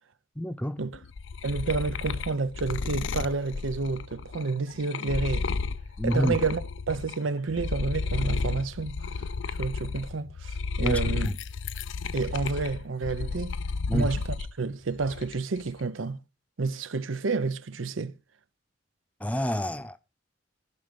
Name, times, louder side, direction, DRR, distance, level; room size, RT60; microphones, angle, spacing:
voice 1, 0.3-0.8 6.0-6.4 10.8-11.4 13.9-14.1 19.2-20.0, equal, 5° left, 0.7 m, -28 dB
sound 1, 0.9-7.2 7.5-14.5 14.9-15.6, left 4 dB, 70° left, 0.5 m, -32 dB
voice 2, 1.4-5.5 6.0-6.6 6.9-9.1 9.6-11.3 12.1-13.6 13.9-14.2 14.6-16.2 16.6-18.1, right 4 dB, 90° right, 0.7 m, -29 dB
13.5 x 5.2 x 5.3 m
head